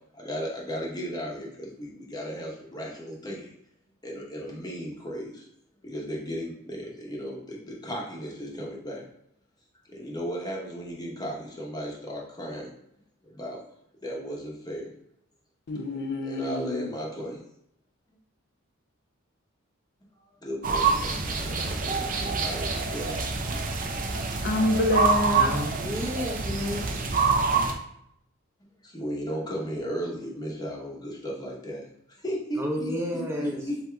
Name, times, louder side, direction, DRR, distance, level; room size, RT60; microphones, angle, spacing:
voice 1, 0.1-3.5 4.0-5.5 5.8-9.0 9.9-12.7 13.3-13.6 14.0-14.9 16.2-17.4 20.4-23.3 28.9-33.8, equal, 20° left, -2 dB, 0.9 m, -35 dB
voice 2, 15.7-17.0 24.1-25.5, left 2 dB, 55° left, 4 dB, 0.4 m, -27 dB
sound 1, 20.6-27.7, right 4 dB, 40° right, 0.6 m, -26 dB
voice 3, 25.3-27.2 32.6-33.6, equal, 10° right, -1 dB, 0.8 m, -32 dB
7.7 x 2.7 x 2.3 m, 0.75 s
head